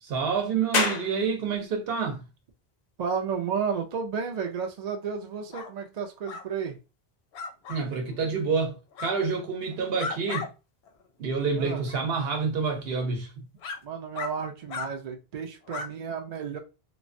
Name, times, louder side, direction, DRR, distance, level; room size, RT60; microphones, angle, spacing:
voice 1, 0.0-2.2 7.7-10.5 11.2-13.3, right 5 dB, 70° right, 0.9 m, -28 dB
sound 1, 0.7-13.8, left 4 dB, 55° left, 0.5 m, -39 dB
voice 2, 3.0-6.8 11.5-11.8 13.8-16.6, right 6 dB, 50° right, 0.5 m, -32 dB
sound 2, 5.5-5.7 6.2-6.4 7.3-7.8 8.9-9.1 9.7-10.5 10.9-11.0 11.8-12.0 12.7-12.8 13.6-13.8 14.1-14.3 14.7-14.9 15.7-15.9, left 5 dB, 90° left, 0.8 m, -35 dB
3.0 x 2.1 x 2.5 m
omnidirectional pair, 1.0 m